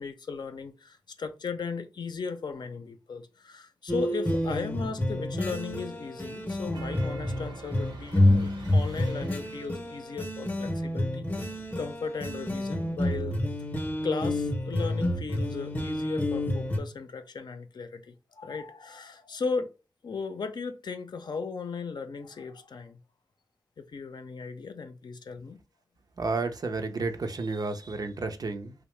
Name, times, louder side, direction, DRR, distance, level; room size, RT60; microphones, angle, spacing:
voice 1, 0.0-13.4 14.0-19.7 20.0-23.0 23.8-25.6, left 5 dB, 65° left, 0.5 m, -36 dB
sound 1, 3.9-16.8, left 1 dB, 20° left, 0.7 m, -29 dB
sound 2, 6.7-9.9, right 2 dB, 80° right, 0.9 m, -44 dB
voice 2, 26.2-28.7, right 3 dB, 55° right, 0.5 m, -31 dB
2.7 x 2.0 x 3.1 m
cardioid pair, 40°, 8 cm